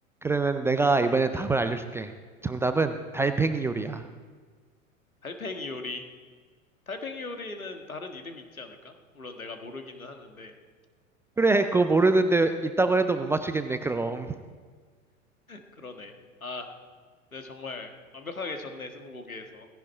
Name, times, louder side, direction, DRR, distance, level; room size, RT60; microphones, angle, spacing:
voice 1, 0.2-2.1 2.4-4.0 11.4-14.4, right 3 dB, 5° right, 9 dB, 0.3 m, -24 dB
voice 2, 5.2-6.0 6.9-10.5 15.5-16.7 17.3-19.7, left 3 dB, 90° left, 5 dB, 1.8 m, -39 dB
17.5 x 16.0 x 4.4 m, 1.5 s
figure-of-eight pair, 90°, 41 cm